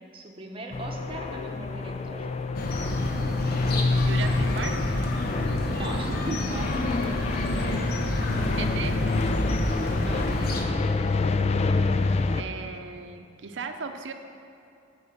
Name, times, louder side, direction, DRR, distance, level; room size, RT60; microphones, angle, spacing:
voice 1, 0.1-2.3 3.0-4.8 5.7-8.1 10.0-10.2, right 1 dB, 30° right, 1 dB, 0.9 m, -40 dB
sound 1, 0.7-12.4, left 3 dB, 35° left, 0.3 m, -27 dB
sound 2, 0.9-2.8 3.1-5.0 5.3-7.2 7.5-9.4 9.7-11.6, left 8 dB, 5° right, 2.0 m, -44 dB
sound 3, 2.5-10.6, left 1 dB, 55° left, 0.9 m, -29 dB
voice 2, 4.1-4.8 8.6-8.9 12.3-14.1, right 5 dB, 80° right, 7 dB, 0.6 m, -36 dB
8.8 x 5.6 x 7.2 m, 2.5 s
head